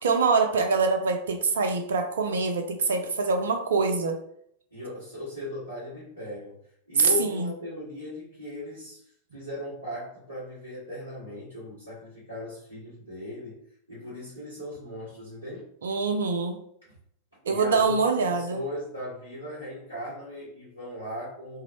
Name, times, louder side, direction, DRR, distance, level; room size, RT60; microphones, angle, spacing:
voice 1, 0.0-4.2 7.2-7.5 15.8-16.6 17.5-18.6, right 4 dB, 65° right, 5 dB, 0.3 m, -25 dB
voice 2, 4.7-6.5 6.9-9.0 9.3-15.7 17.4-18.0 18.2-21.6, left 1 dB, 85° left, -13 dB, 1.1 m, -37 dB
2.3 x 2.0 x 2.8 m, 0.68 s
figure-of-eight pair, 90°, 0 cm